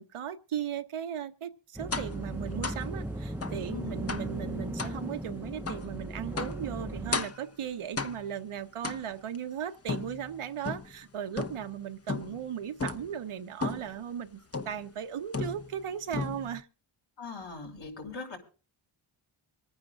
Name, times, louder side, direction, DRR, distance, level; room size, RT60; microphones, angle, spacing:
voice 1, 0.0-16.7, right 9 dB, 85° right, 1.1 m, -37 dB
sound 1, 1.8-7.2, right 1 dB, 5° right, 0.8 m, -37 dB
sound 2, 1.9-2.2 2.6-2.9 3.4-3.6 4.1-4.4 4.8-5.0 5.7-5.9 6.4-6.6 7.1-7.5 8.0-8.4 8.8-9.4 9.9-11.0 11.4-11.8 12.1-12.4 12.8-13.1 13.6-14.0 14.5-14.9 15.3-15.8 16.1-16.6, left 4 dB, 30° left, 1.0 m, -35 dB
voice 2, 17.2-18.4, left 4 dB, 60° left, 5.3 m, -40 dB
26.5 x 9.5 x 2.5 m
cardioid pair, 70°, 49 cm